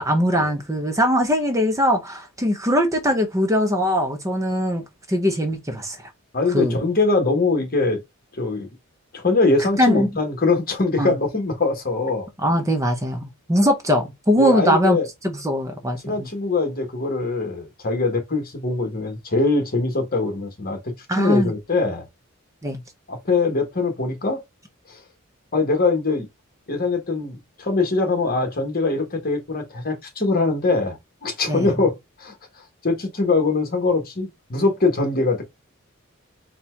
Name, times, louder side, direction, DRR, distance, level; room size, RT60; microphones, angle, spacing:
voice 1, 0.0-6.0 6.5-6.8 9.6-10.1 11.0-11.2 12.4-13.2 13.5-15.0 15.4-16.3 21.1-21.5 22.6-22.8 31.5-31.7, equal, 15° right, 0.6 m, -21 dB
voice 2, 6.3-8.0 8.3-8.7 9.1-12.3 14.4-15.1 16.0-22.1 23.1-24.4 24.9-25.0 25.5-26.3 26.7-32.4 32.8-35.4, left 3 dB, 45° left, 1.3 m, -22 dB
4.3 x 2.3 x 4.4 m
head